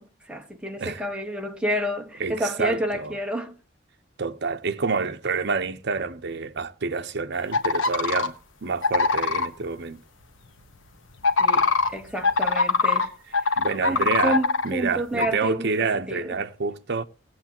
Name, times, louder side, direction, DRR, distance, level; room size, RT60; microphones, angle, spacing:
voice 1, 0.0-3.5 11.4-13.1 13.9-16.4, equal, 5° right, 1.4 m, -30 dB
voice 2, 2.2-3.2 4.2-8.3 8.6-10.0 13.6-14.4 14.6-17.0, right 4 dB, 60° right, 0.8 m, -28 dB
sound 1, 7.5-8.3 8.8-9.5 11.2-13.1 13.3-14.7 15.2-15.3, left 4 dB, 75° left, 1.3 m, -22 dB
18.0 x 8.3 x 2.9 m
head